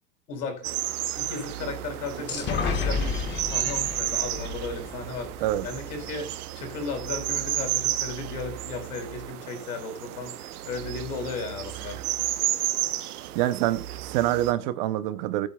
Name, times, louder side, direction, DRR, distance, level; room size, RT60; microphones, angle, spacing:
voice 1, 0.3-0.7 1.1-3.1 3.5-12.0, left 4 dB, 80° left, 4.3 m, -35 dB
sound 1, 0.6-14.5, right 14 dB, 70° right, 0.9 m, -32 dB
sound 2, 2.3-6.0, left 4 dB, 25° left, 1.3 m, -31 dB
voice 2, 13.3-15.5, right 14 dB, 30° right, 0.5 m, -26 dB
15.0 x 8.5 x 2.2 m
supercardioid pair, 155°, 47 cm